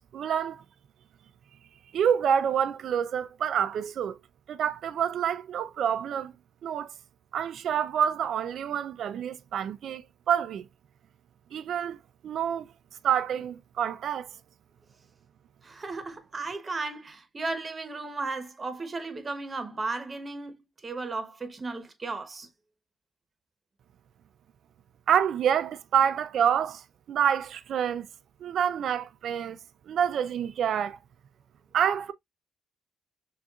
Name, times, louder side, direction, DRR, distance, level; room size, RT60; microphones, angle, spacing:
voice 1, 0.1-0.6 1.9-4.2 4.5-6.3 6.6-6.9 7.3-10.6 11.5-12.0 12.2-12.7 13.0-14.3 25.1-26.8 27.1-28.1 28.4-29.6 29.9-31.0 31.7-32.1, right 8 dB, 65° right, 0.3 m, -27 dB
voice 2, 15.6-22.5, right 3 dB, 30° right, 0.9 m, -35 dB
6.2 x 2.5 x 2.3 m
cardioid pair, 90°, 0 cm